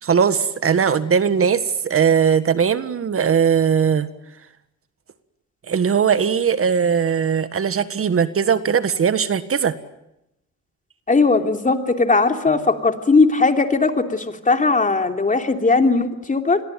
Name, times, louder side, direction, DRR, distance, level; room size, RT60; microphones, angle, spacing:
voice 1, 0.0-4.1 5.7-9.7, right 7 dB, 45° right, 12 dB, 1.6 m, -19 dB
voice 2, 11.1-16.6, left 3 dB, 25° left, 6 dB, 3.1 m, -18 dB
28.0 x 22.0 x 9.2 m, 0.86 s
cardioid pair, 90°, 30 cm